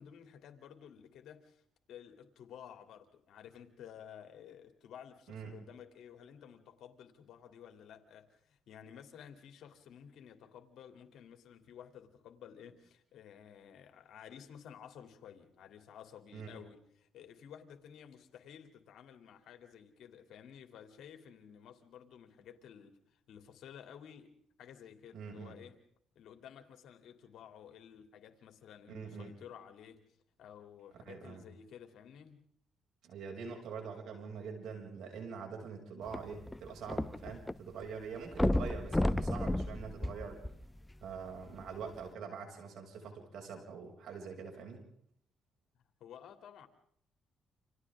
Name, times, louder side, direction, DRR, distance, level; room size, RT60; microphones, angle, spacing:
voice 1, 0.0-1.6 1.9-24.3 24.6-25.8 26.1-30.0 30.4-32.4 46.0-46.7, left 8 dB, 75° left, 3.0 m, -53 dB
voice 2, 25.1-25.6 28.9-29.3 31.0-31.5 33.0-40.4 41.0-44.8, right 6 dB, 75° right, 6.6 m, -44 dB
sound 1, 36.1-37.5 37.8-37.9 38.3-40.9 41.6-41.7, left 1 dB, 10° left, 0.8 m, -32 dB
29.5 x 27.0 x 3.7 m
cardioid pair, 90°, 0 cm